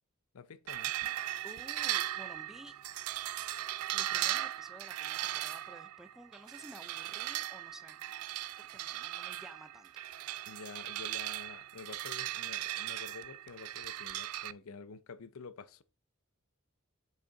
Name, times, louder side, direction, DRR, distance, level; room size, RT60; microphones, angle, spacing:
voice 1, 0.3-0.9 10.5-15.8, left 4 dB, 75° left, 0.5 m, -49 dB
sound 1, 0.7-14.5, right 14 dB, 85° right, 0.3 m, -38 dB
voice 2, 1.4-2.8 3.9-8.1 8.6-9.9, right 1 dB, ahead, 0.3 m, -53 dB
7.0 x 5.0 x 3.8 m
head